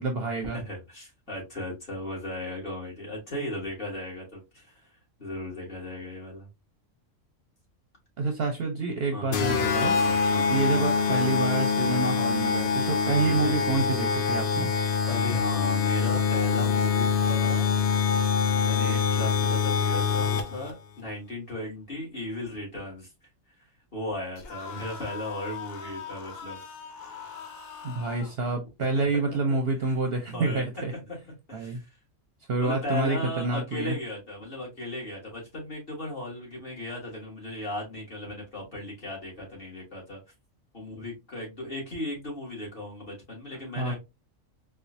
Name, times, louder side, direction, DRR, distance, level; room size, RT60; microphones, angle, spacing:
voice 1, 0.0-0.6 8.2-9.9 10.5-14.7 27.8-30.9 31.5-31.8 32.5-34.0 43.8-44.0, right 3 dB, 55° right, 0.8 m, -28 dB
voice 2, 0.5-4.7 5.2-6.5 9.1-9.7 10.0-10.6 13.2-13.5 15.1-17.8 18.6-23.1 23.9-26.6 26.9-27.5 28.9-29.2 30.3-30.6 31.1-31.2 31.5-31.9 32.6-40.2 40.7-44.0, left 1 dB, 40° left, 2.1 m, -36 dB
sound 1, 9.3-20.7, left 5 dB, 60° left, 0.6 m, -25 dB
sound 2, 24.4-28.4, left 6 dB, 90° left, 1.3 m, -41 dB
4.3 x 2.4 x 2.5 m
omnidirectional pair, 1.4 m